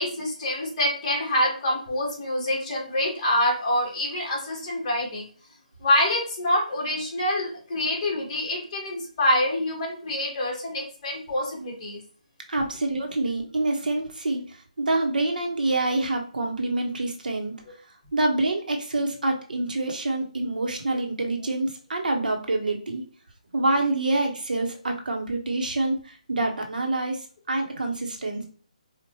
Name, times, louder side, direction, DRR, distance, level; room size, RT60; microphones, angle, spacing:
voice 1, 0.0-5.3 5.8-12.0, left 1 dB, 35° left, -3 dB, 1.8 m, -26 dB
voice 2, 12.5-17.6 18.1-23.0 23.5-28.4, right 2 dB, 80° right, 2 dB, 1.1 m, -26 dB
5.0 x 2.5 x 3.0 m, 0.42 s
hypercardioid pair, 160°, 4 cm